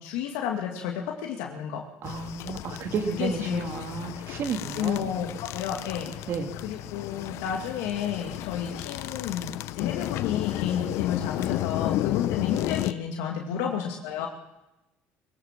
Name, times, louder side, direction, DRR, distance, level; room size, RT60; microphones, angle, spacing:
voice 1, 0.0-1.9 3.1-3.6 4.7-6.2 6.6-14.3, left 9 dB, 90° left, 1 dB, 2.4 m, -31 dB
sound 1, 2.0-12.9, left 14 dB, 75° left, 0.7 m, -33 dB
voice 2, 2.0-5.1 6.3-6.5 13.5-13.7, right 5 dB, 60° right, 5 dB, 3.0 m, -32 dB
22.0 x 17.0 x 7.6 m, 0.94 s
supercardioid pair, 90°, 5 cm